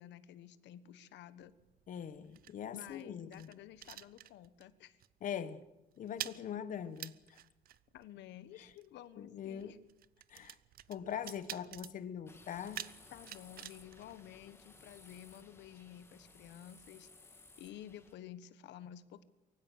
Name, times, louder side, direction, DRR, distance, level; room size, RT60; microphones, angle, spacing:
voice 1, 0.0-1.5 2.7-5.0 7.9-9.8 13.1-19.2, left 11 dB, 80° left, 1.3 m, -52 dB
sound 1, 1.4-4.7 5.0-5.3 5.5-14.9, right 12 dB, 55° right, 0.7 m, -50 dB
voice 2, 1.9-3.5 5.2-5.6 6.0-7.4 8.6-8.7 9.2-9.7 10.3-10.6 10.9-12.9, left 8 dB, 50° left, 1.2 m, -42 dB
sound 2, 12.3-18.1, left 3 dB, 15° left, 2.3 m, -59 dB
23.5 x 16.0 x 9.2 m
cardioid pair, 155°, 18 cm